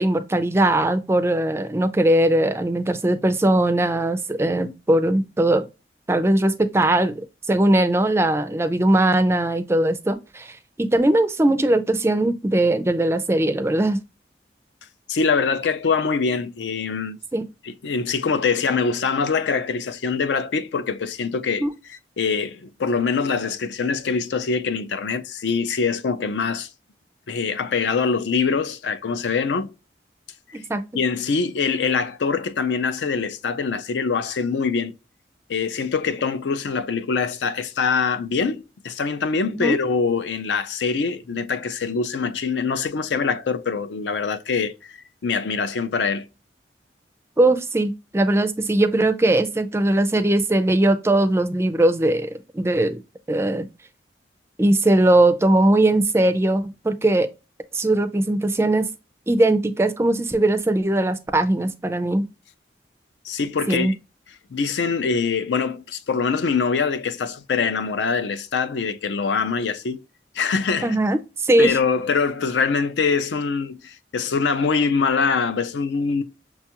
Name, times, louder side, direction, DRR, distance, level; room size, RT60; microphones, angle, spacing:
voice 1, 0.0-5.7 6.1-14.0 17.3-17.4 21.6-21.7 30.5-30.8 39.5-39.8 47.4-53.0 53.3-53.7 54.6-57.3 57.7-58.9 59.3-62.2 63.7-63.9 70.8-71.8, right 1 dB, 15° right, 0.3 m, -20 dB
voice 2, 15.1-17.2 17.6-21.6 21.9-26.7 27.3-29.7 30.5-30.6 30.9-34.9 35.5-45.0 45.2-46.3 63.2-63.9 64.5-70.0 70.4-71.0 71.6-76.2, left 5 dB, 80° left, 0.4 m, -24 dB
6.0 x 2.3 x 2.8 m
head